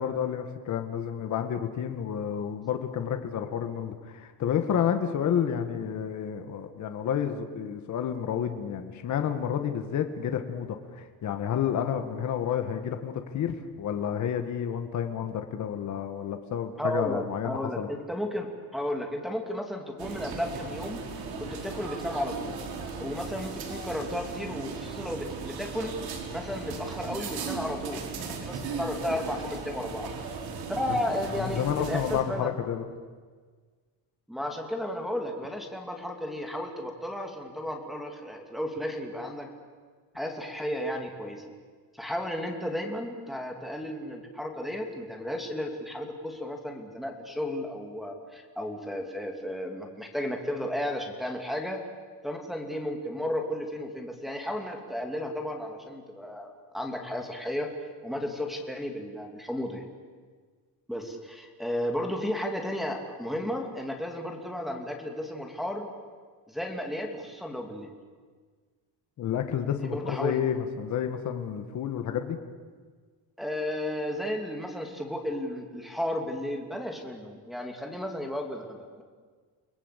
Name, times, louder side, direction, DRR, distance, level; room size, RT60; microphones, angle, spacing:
voice 1, 0.0-17.9 30.9-31.0 31.4-32.8 69.2-72.4, left 8 dB, 45° left, 6 dB, 2.0 m, -30 dB
voice 2, 16.8-21.0 21.4-22.6 23.0-25.9 26.3-28.1 28.4-30.1 30.7-32.5 34.3-39.5 40.1-41.4 41.9-51.8 52.2-57.7 58.0-59.9 60.9-65.9 66.5-67.9 69.8-70.4 73.4-79.0, left 1 dB, ahead, 1 dB, 2.7 m, -33 dB
sound 1, 20.0-32.2, right 5 dB, 60° right, 4.8 m, -37 dB
30.0 x 20.5 x 8.5 m, 1.6 s
cardioid pair, 165°, 40 cm